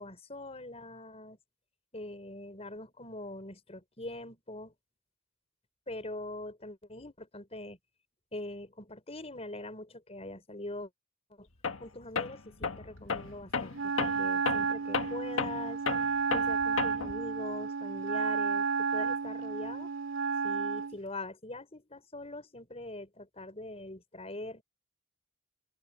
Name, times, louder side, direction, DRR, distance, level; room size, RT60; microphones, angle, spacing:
voice 1, 0.0-1.4 1.9-4.7 5.9-7.8 8.3-10.9 11.3-11.5 11.8-15.8 16.3-19.9 20.4-24.6, left 2 dB, 30° left, 5.2 m, -43 dB
Tools, 11.6-11.9 12.2-17.2, left 5 dB, 80° left, 1.5 m, -34 dB
Wind instrument woodwind instrument, 13.7-21.0, right 5 dB, 70° right, 2.6 m, -32 dB
open air
head